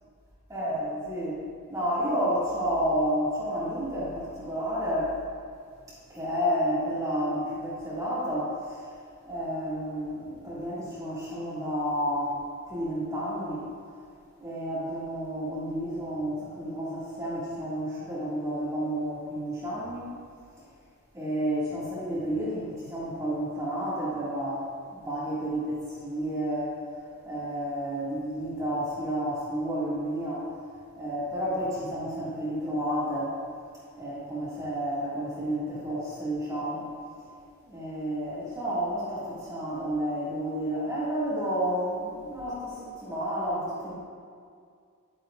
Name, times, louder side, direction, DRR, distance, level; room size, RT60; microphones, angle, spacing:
voice 1, 0.5-1.4 1.7-5.1 6.1-8.8 9.3-12.4 12.7-13.6 14.4-20.1 21.1-26.7 27.3-30.5 31.0-33.3 33.9-36.8 37.6-43.9, equal, 15° right, -10 dB, 2.0 m, -31 dB
11.0 x 8.8 x 2.5 m, 2.2 s
head